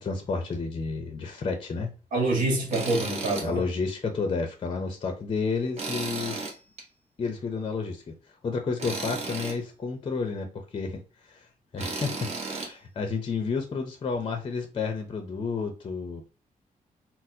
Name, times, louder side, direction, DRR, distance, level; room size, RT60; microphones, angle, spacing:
voice 1, 0.0-1.9 3.4-6.4 7.2-8.1 8.4-11.5 11.7-16.2, left 4 dB, 35° left, 0.5 m, -31 dB
voice 2, 2.1-3.6, right 2 dB, 65° right, 1.3 m, -26 dB
Tools, 2.7-3.5 3.9-4.0 5.8-6.8 8.8-9.6 11.8-12.7, right 3 dB, 45° right, 0.9 m, -34 dB
4.1 x 2.0 x 2.6 m
cardioid pair, 115°, 15 cm